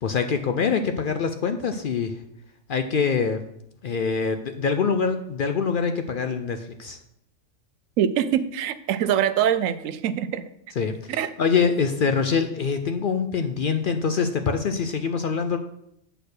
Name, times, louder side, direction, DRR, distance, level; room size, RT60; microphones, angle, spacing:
voice 1, 0.0-2.1 2.7-3.4 3.8-7.0 10.8-15.6, left 5 dB, 60° left, 7 dB, 0.6 m, -24 dB
voice 2, 8.0-10.4 11.1-11.3, right 9 dB, 90° right, 13 dB, 1.0 m, -23 dB
7.7 x 4.3 x 6.5 m, 0.76 s
omnidirectional pair, 1.3 m